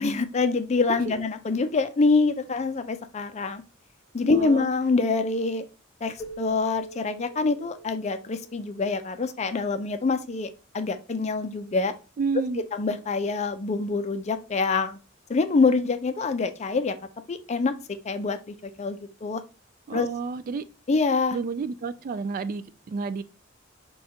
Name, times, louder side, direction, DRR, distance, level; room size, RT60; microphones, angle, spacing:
voice 1, 0.0-3.6 4.1-5.6 6.0-11.9 12.7-15.0 15.3-16.9 17.3-17.7 18.0-19.4 19.9-20.1 20.9-21.4, left 4 dB, 35° left, 0.4 m, -25 dB
voice 2, 4.2-4.7 12.2-12.6 19.9-20.6 21.3-23.2, right 4 dB, 45° right, 0.3 m, -30 dB
Keyboard (musical), 6.2-9.4, right 3 dB, 10° left, 1.1 m, -44 dB
5.0 x 2.3 x 4.2 m
head